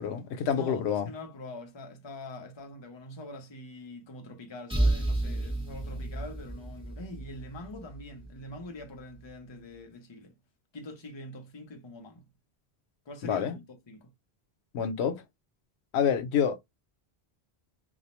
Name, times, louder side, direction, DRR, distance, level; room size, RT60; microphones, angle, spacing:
voice 1, 0.0-1.1 13.2-13.6 14.7-15.2 15.9-16.6, left 7 dB, 90° left, 0.9 m, -27 dB
voice 2, 0.5-10.3 10.7-12.2 13.1-14.1, left 1 dB, 35° left, 0.5 m, -44 dB
sound 1, 4.7-8.4, right 1 dB, 5° right, 0.7 m, -31 dB
2.3 x 2.0 x 2.9 m
omnidirectional pair, 1.1 m